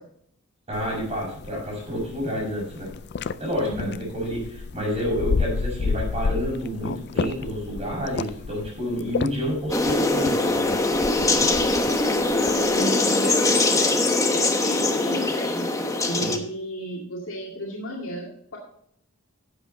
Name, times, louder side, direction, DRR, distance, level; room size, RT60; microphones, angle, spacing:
sound 1, 0.7-12.9, left 4 dB, 55° left, 0.4 m, -32 dB
voice 1, 0.7-2.9 3.4-10.8 16.2-16.4, equal, 30° right, -8 dB, 5.1 m, -29 dB
voice 2, 3.7-4.0 12.7-15.7 16.1-18.6, right 1 dB, 75° left, -3 dB, 2.2 m, -33 dB
sound 2, 9.7-16.4, left 2 dB, 15° left, 1.0 m, -22 dB
11.5 x 7.8 x 4.0 m, 0.67 s
head